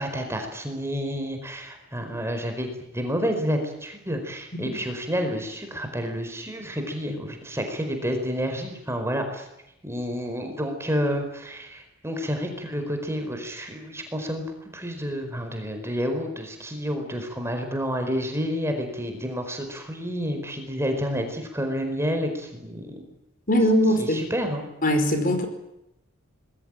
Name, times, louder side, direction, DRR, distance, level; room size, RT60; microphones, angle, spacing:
voice 1, 0.0-9.5 9.8-23.0 24.0-24.7, equal, 15° right, 5 dB, 4.7 m, -29 dB
voice 2, 23.5-24.2 24.8-25.5, equal, 45° left, 7 dB, 5.1 m, -20 dB
26.0 x 21.0 x 9.1 m, 0.86 s
head